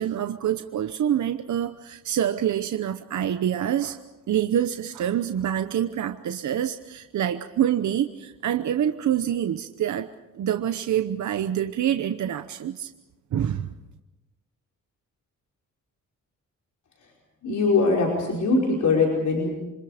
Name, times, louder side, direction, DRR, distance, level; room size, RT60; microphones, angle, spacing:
voice 1, 0.0-4.0 4.3-10.1 10.3-12.9 13.3-13.7, right 10 dB, 65° right, 9 dB, 0.9 m, -26 dB
voice 2, 17.4-19.5, left 3 dB, 65° left, -2 dB, 5.2 m, -22 dB
27.5 x 25.0 x 5.1 m, 1.0 s
wide cardioid pair, 135°, 31 cm